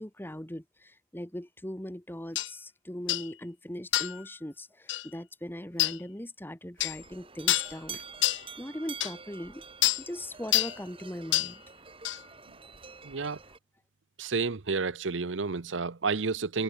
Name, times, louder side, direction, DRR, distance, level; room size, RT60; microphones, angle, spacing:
voice 1, 0.0-8.0 8.6-9.6 10.1-11.6 13.1-13.2, left 1 dB, 10° left, 1.8 m, -40 dB
sound 1, 2.4-2.5 3.1-3.3 3.9-4.2 4.9-5.1 5.8-6.0 6.8-7.0 7.5-7.7 8.2-8.4 9.0-9.1 9.8-10.0 10.5-10.8 11.3-11.5 12.0-12.2, left 15 dB, 70° left, 0.7 m, -27 dB
sound 2, 6.8-13.6, right 5 dB, 30° right, 6.4 m, -47 dB
voice 2, 13.0-13.4 14.2-16.6, right 4 dB, 80° right, 0.9 m, -30 dB
head